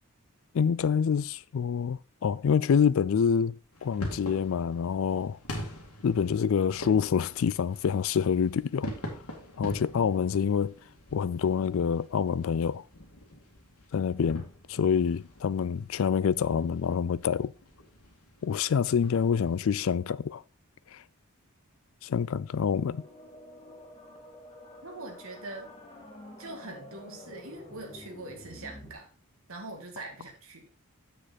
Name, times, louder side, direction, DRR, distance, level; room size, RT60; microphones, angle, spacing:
voice 1, 0.5-5.4 6.0-8.9 9.6-10.7 11.1-12.8 13.9-17.5 18.4-20.4 20.9-21.0 22.0-23.0, left 7 dB, 65° left, 0.3 m, -27 dB
sound 1, 3.7-19.6, left 1 dB, 90° left, 2.2 m, -44 dB
sound 2, 22.4-28.9, left 1 dB, 25° left, 2.0 m, -49 dB
voice 2, 24.8-25.7 26.4-29.1 29.5-30.7, right 2 dB, 70° right, 1.7 m, -43 dB
7.5 x 6.7 x 4.1 m
head